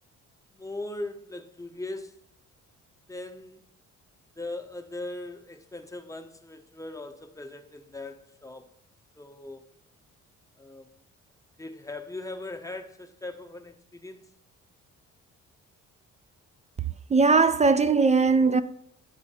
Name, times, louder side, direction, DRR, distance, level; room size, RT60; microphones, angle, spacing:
voice 1, 0.5-2.1 3.1-3.6 4.4-8.7 9.2-9.6 10.6-10.9 11.6-14.2, left 2 dB, 10° left, 0.7 m, -39 dB
voice 2, 17.1-18.6, right 4 dB, 25° right, 0.4 m, -20 dB
10.0 x 4.3 x 4.2 m
cardioid pair, 90°, 30 cm